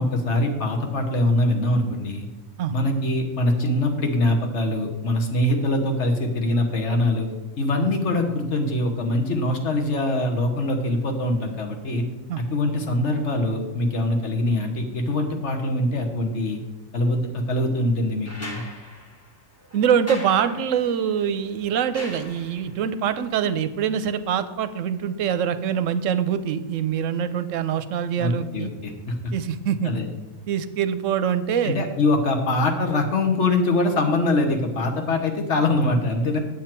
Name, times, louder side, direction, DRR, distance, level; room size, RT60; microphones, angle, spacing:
voice 1, 0.0-2.3 2.7-7.3 7.6-12.0 12.5-16.6 16.9-18.6 28.2-29.3 29.8-30.1 31.6-36.4, left 2 dB, 65° left, 3 dB, 1.4 m, -23 dB
sound 1, 18.2-22.9 24.4-24.5, left 1 dB, 10° left, 1.4 m, -41 dB
voice 2, 19.7-28.7 29.3-29.9 30.5-31.8, right 8 dB, 80° right, 12 dB, 1.0 m, -24 dB
8.1 x 7.7 x 4.4 m, 1.1 s
omnidirectional pair, 1.3 m